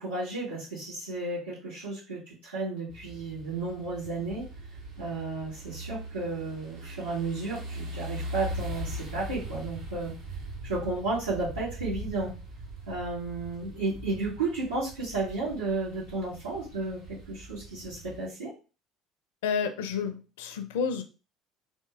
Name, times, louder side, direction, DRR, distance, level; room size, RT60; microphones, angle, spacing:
voice 1, 0.0-4.4 5.0-10.1 10.6-12.3 12.9-18.5, right 3 dB, 85° right, -11 dB, 2.1 m, -33 dB
sound 1, 2.9-18.3, right 1 dB, 60° right, 0.9 m, -41 dB
voice 2, 19.4-21.0, left 6 dB, 65° left, 9 dB, 0.4 m, -30 dB
3.5 x 2.7 x 3.4 m, 0.34 s
figure-of-eight pair, 55°, 0 cm